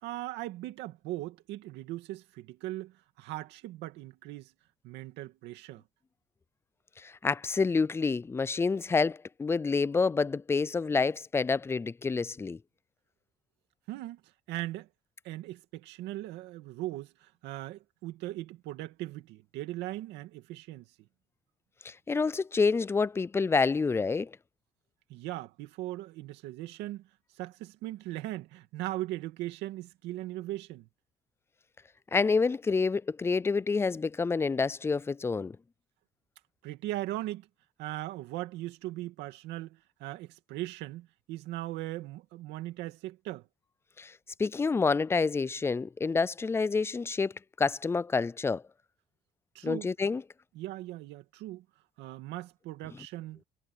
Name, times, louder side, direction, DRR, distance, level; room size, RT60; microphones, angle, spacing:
voice 1, 0.0-4.5 4.8-5.8 13.9-14.2 14.5-14.9 15.2-20.9 25.1-27.0 27.4-30.9 36.6-37.5 37.8-43.5 49.5-49.9 50.5-51.6 52.0-53.4, right 16 dB, 90° right, 2.4 m, -39 dB
voice 2, 7.0-12.6 21.8-24.3 32.1-35.6 44.0-44.1 44.4-47.3 47.6-48.6 49.6-50.2, left 4 dB, 15° left, 0.3 m, -28 dB
cardioid pair, 115°, 17 cm